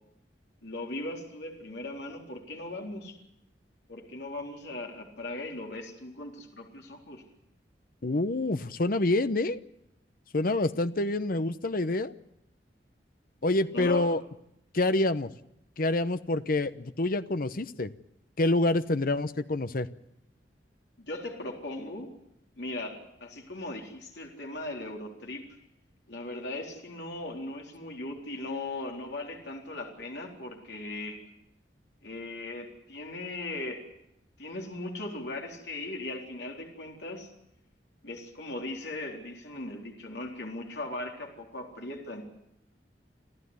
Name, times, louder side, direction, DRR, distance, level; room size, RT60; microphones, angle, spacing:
voice 1, 0.6-3.2 3.9-7.2 13.7-14.1 21.0-22.1 22.6-25.4 26.1-31.2 32.0-33.9 34.4-37.3 38.0-42.2, left 2 dB, 70° left, 0 dB, 4.0 m, -38 dB
voice 2, 8.0-9.6 10.3-12.1 13.4-14.2 14.7-15.3 15.8-17.9 18.4-19.9, left 2 dB, 55° left, 12 dB, 0.9 m, -27 dB
27.0 x 14.5 x 9.7 m, 0.80 s
head